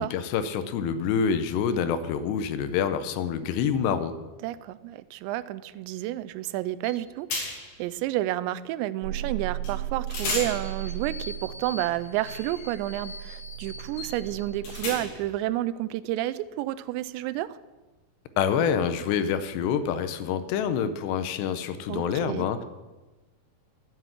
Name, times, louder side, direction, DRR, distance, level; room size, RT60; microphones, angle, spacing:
voice 1, 0.0-4.1 18.4-22.6, left 7 dB, 80° left, 11 dB, 2.8 m, -27 dB
voice 2, 4.4-17.5 21.9-22.5, right 14 dB, 85° right, 16 dB, 2.8 m, -30 dB
sound 1, 6.8-7.0 7.3-7.8 9.6-9.8 10.1-15.4, left 3 dB, 50° left, 4.0 m, -36 dB
sound 2, 9.0-14.9, right 13 dB, 60° right, 3.3 m, -37 dB
13.0 x 8.1 x 7.4 m, 1.2 s
omnidirectional pair, 5.1 m